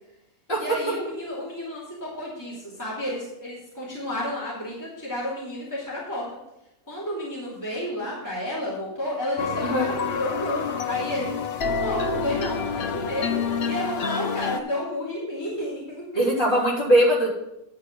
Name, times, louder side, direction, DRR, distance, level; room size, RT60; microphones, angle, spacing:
voice 1, 0.6-6.3 6.9-11.3 11.8-16.0, left 1 dB, 10° left, -7 dB, 2.7 m, -31 dB
sound 1, 9.4-14.6, left 5 dB, 60° left, 0.7 m, -28 dB
voice 2, 16.1-17.3, right 1 dB, 35° left, -7 dB, 3.6 m, -20 dB
10.5 x 4.9 x 6.0 m, 0.86 s
omnidirectional pair, 1.5 m